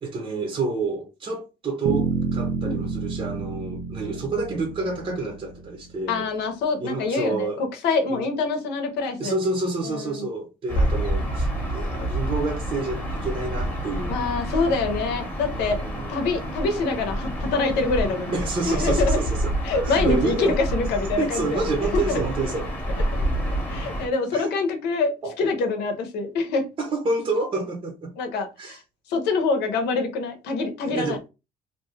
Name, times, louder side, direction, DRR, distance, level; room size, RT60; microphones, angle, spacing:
voice 1, 0.0-6.3 6.8-7.6 8.1-8.3 9.2-14.2 15.5-16.1 18.3-19.5 19.8-20.6 21.2-22.7 24.3-24.5 25.2-25.3 26.8-28.2 28.6-28.8 30.9-31.2, right 3 dB, 35° right, 0.7 m, -28 dB
sound 1, 1.9-5.9, right 5 dB, 85° right, 0.5 m, -29 dB
voice 2, 6.1-9.4 9.9-10.3 14.1-15.8 16.1-18.4 18.6-19.2 19.6-21.6 21.9-22.2 23.1-23.2 23.7-26.7 28.2-28.8 29.1-31.2, left 3 dB, 85° left, 0.8 m, -25 dB
Gull seagull / Ocean, 10.7-24.1, right 1 dB, 10° left, 0.9 m, -28 dB
2.6 x 2.2 x 3.1 m
cardioid pair, 110°, 17 cm